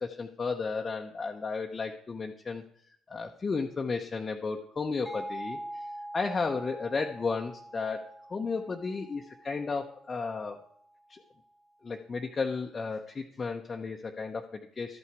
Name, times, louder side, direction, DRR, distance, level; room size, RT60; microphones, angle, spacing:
voice 1, 0.0-2.6 3.1-5.6 6.1-10.6 11.1-11.2 11.8-15.0, left 4 dB, 35° left, 2 dB, 0.8 m, -33 dB
sound 1, 5.1-10.5, right 1 dB, 15° right, 1.4 m, -44 dB
12.5 x 5.7 x 4.7 m, 0.67 s
hypercardioid pair, 50°, 0 cm